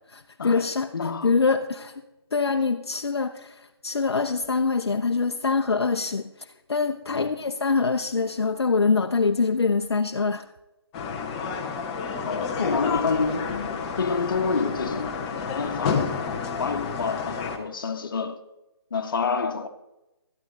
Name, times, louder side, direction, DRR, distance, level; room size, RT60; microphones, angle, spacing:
voice 1, 0.1-0.9 1.2-1.9 2.3-10.4, left 4 dB, 70° left, 0.7 m, -24 dB
voice 2, 0.9-1.3 2.5-2.6 7.1-7.3 12.2-18.4 18.9-19.7, left 4 dB, 50° left, 1.3 m, -28 dB
sound 1, 10.9-17.6, left 5 dB, 15° left, 1.0 m, -30 dB
12.5 x 11.5 x 3.9 m
figure-of-eight pair, 155°, 14 cm